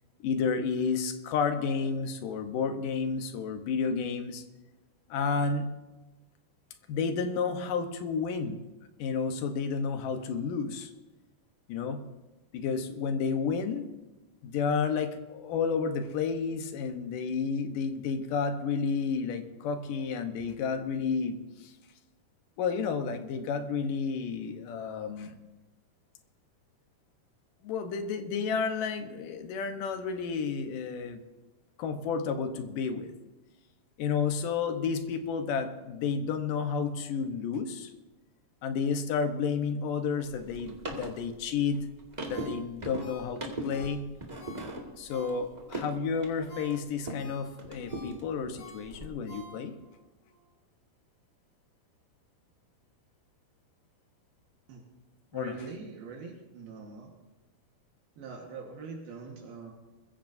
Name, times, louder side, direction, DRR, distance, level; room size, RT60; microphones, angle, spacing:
voice 1, 0.2-4.4 5.1-5.7 6.9-8.6 9.0-10.9 11.7-12.0 12.5-13.9 14.4-21.7 22.6-25.4 27.6-31.2 31.8-33.2 34.0-37.9 38.6-41.9 42.3-44.0 45.0-49.7 55.3-55.6, left 5 dB, 70° left, 7 dB, 2.4 m, -31 dB
sound 1, 40.2-47.3 47.6-49.1, right 2 dB, 50° right, 0.5 m, -40 dB
Ringtone, 42.3-45.8 46.2-49.9 50.3-50.4, equal, 90° left, 7.3 m, -50 dB
voice 2, 55.3-57.1 58.2-59.7, right 4 dB, 75° right, 0 dB, 3.3 m, -43 dB
21.5 x 15.0 x 2.7 m, 1.1 s
omnidirectional pair, 4.4 m